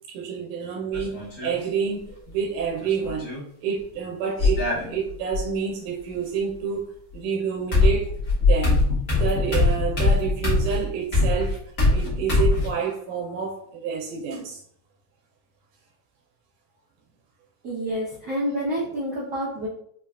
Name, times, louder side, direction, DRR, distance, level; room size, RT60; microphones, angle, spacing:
voice 1, 0.1-3.3 3.6-6.9 7.1-8.1 8.4-11.6 11.9-14.6, right 6 dB, 90° right, 2.1 m, -28 dB
sound 1, 0.9-1.5 2.8-3.4 4.4-5.4 7.1-7.2 7.7-12.7, left 3 dB, 70° left, 0.7 m, -22 dB
voice 2, 17.6-19.7, equal, 65° right, 0.9 m, -28 dB
5.0 x 2.2 x 2.3 m
omnidirectional pair, 3.4 m